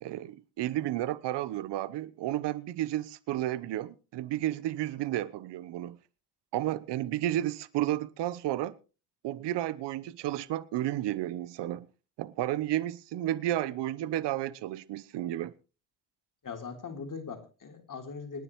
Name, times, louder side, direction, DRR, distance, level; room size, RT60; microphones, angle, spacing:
voice 1, 0.0-6.0 6.5-8.7 9.2-11.9 12.2-15.5, right 13 dB, 70° right, 1.0 m, -32 dB
voice 2, 16.4-18.4, left 5 dB, 45° left, 3.9 m, -40 dB
26.0 x 10.0 x 3.1 m
hypercardioid pair, 55°, 43 cm